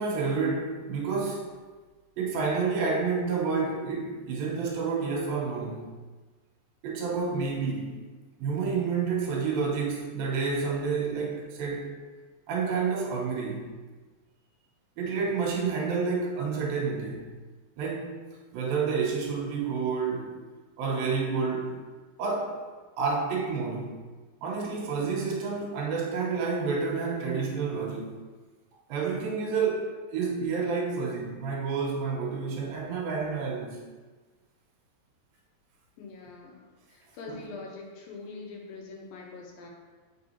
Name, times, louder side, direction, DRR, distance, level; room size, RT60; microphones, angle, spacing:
voice 1, 0.0-1.5 2.2-5.9 6.8-8.0 8.4-11.9 12.5-13.7 15.0-17.3 17.8-18.2 18.5-20.4 20.8-21.8 22.2-22.6 23.0-23.9 24.4-28.1 28.9-33.8 37.3-37.4, right 5 dB, 90° right, -2 dB, 2.8 m, -29 dB
voice 2, 36.0-36.6 36.9-39.7, left 3 dB, 80° left, 0 dB, 2.7 m, -43 dB
7.5 x 5.3 x 2.8 m, 1.3 s
omnidirectional pair, 4.1 m